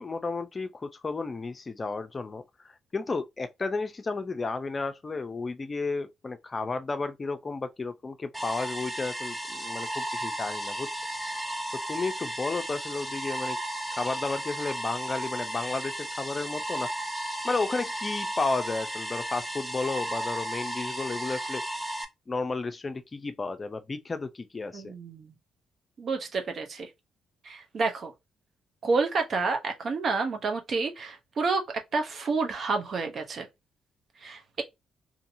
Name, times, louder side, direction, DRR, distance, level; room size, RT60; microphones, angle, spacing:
voice 1, 0.0-2.4 2.9-10.9 11.9-13.6 13.9-16.9 17.4-21.6 22.3-24.9, left 3 dB, 35° left, 0.4 m, -32 dB
sound 1, 8.3-22.0, right 1 dB, 10° right, 0.7 m, -34 dB
voice 2, 24.7-25.3 26.0-26.9 27.4-28.1 28.8-33.5 34.2-34.6, right 4 dB, 55° right, 0.7 m, -29 dB
2.7 x 2.6 x 2.6 m
hypercardioid pair, 50°, 0 cm